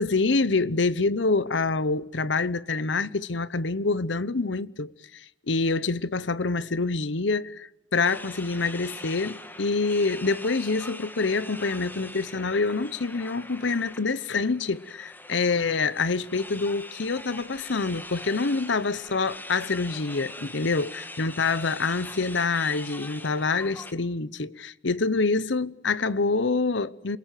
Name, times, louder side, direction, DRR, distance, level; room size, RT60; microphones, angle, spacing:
voice 1, 0.0-27.2, left 3 dB, 80° left, 0.9 m, -26 dB
sound 1, 8.0-23.9, left 2 dB, 10° left, 1.8 m, -42 dB
28.5 x 21.5 x 9.3 m
head